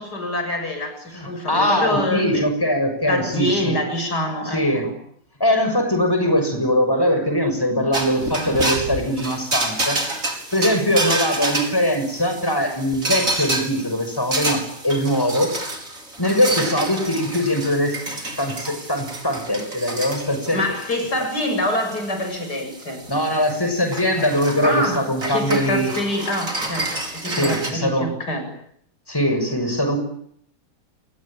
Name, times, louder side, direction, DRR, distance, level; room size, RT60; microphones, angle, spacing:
voice 1, 0.0-2.5 3.1-4.9 20.5-23.0 24.6-28.5, left 1 dB, 65° left, 7 dB, 8.2 m, -26 dB
voice 2, 1.1-3.8 4.5-4.8 5.4-10.0 10.5-15.5 16.2-18.0 18.4-20.6 21.2-21.3 23.1-25.9 27.3-28.1 29.1-30.0, equal, 10° left, 6 dB, 6.7 m, -21 dB
sound 1, 7.9-27.7, right 2 dB, 50° right, 5.8 m, -29 dB
28.5 x 22.5 x 9.1 m, 0.70 s
omnidirectional pair, 1.8 m